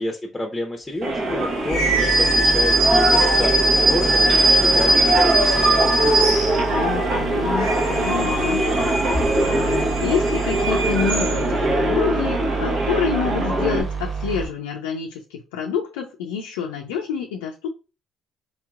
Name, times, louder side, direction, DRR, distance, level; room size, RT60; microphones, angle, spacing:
voice 1, 0.0-6.4, left 1 dB, 15° left, 2 dB, 0.7 m, -29 dB
sound 1, 1.0-13.8, right 1 dB, 60° right, 1.1 m, -22 dB
sound 2, 1.7-14.5, right 5 dB, 45° right, 1.6 m, -29 dB
sound 3, 1.7-6.9 7.4-11.7, right 2 dB, 85° right, 2.1 m, -21 dB
voice 2, 6.7-17.7, left 7 dB, 85° left, 2 dB, 0.4 m, -28 dB
4.2 x 2.9 x 2.4 m, 0.31 s
hypercardioid pair, 55°, 0 cm